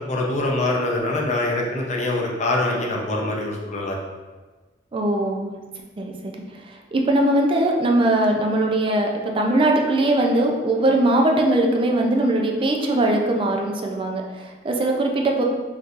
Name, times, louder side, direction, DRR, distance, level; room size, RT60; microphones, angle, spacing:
voice 1, 0.1-4.0, left 2 dB, 40° left, -1 dB, 0.5 m, -24 dB
voice 2, 4.9-5.5 6.0-6.3 6.7-15.4, right 1 dB, 30° right, 1 dB, 0.4 m, -20 dB
3.6 x 2.7 x 2.4 m, 1.3 s
head